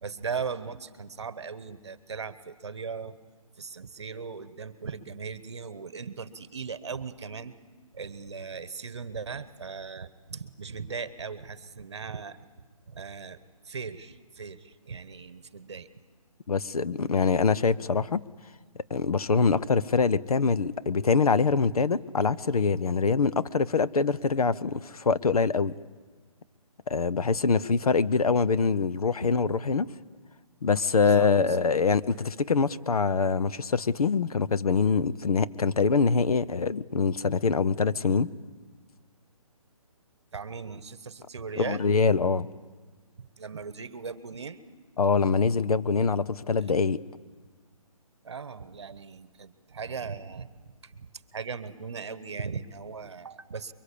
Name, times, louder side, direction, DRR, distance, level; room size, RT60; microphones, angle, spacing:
voice 1, 0.0-3.2 3.6-7.5 7.9-12.4 12.9-13.4 13.6-15.9 29.2-29.3 31.2-31.3 40.3-41.9 43.2-44.6 48.2-53.7, right 5 dB, 50° right, 15 dB, 1.2 m, -38 dB
voice 2, 16.5-18.2 18.9-25.7 26.9-29.9 30.6-38.3 41.6-42.5 45.0-47.0, left 4 dB, 85° left, 15 dB, 0.9 m, -24 dB
24.0 x 23.5 x 8.5 m, 1.4 s
hypercardioid pair, 180°, 19 cm